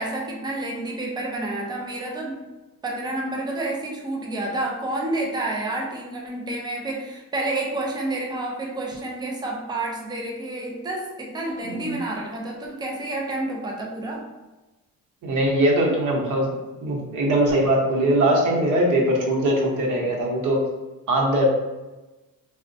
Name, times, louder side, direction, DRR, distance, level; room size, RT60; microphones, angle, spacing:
voice 1, 0.0-2.5 2.8-14.3, right 2 dB, 15° right, -1 dB, 0.3 m, -29 dB
voice 2, 15.2-16.5 16.8-20.6 21.1-21.4, right 1 dB, 60° right, -1 dB, 0.8 m, -21 dB
4.1 x 2.1 x 2.6 m, 1.1 s
cardioid pair, 175°, 35 cm